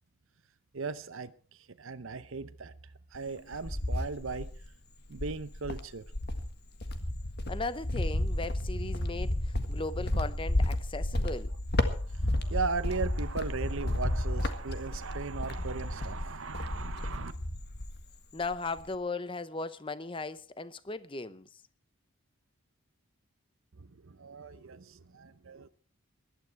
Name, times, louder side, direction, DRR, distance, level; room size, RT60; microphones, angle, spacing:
voice 1, 0.7-2.7 3.1-4.5 5.1-6.0 11.9-17.3 23.8-25.7, right 4 dB, 65° right, 0.7 m, -37 dB
Cricket, 3.1-4.7 5.1-18.1 18.4-18.9, left 1 dB, 50° left, 1.6 m, -32 dB
voice 2, 7.5-11.5 18.3-21.6, left 3 dB, 25° left, 0.7 m, -37 dB
19.0 x 12.0 x 4.6 m
head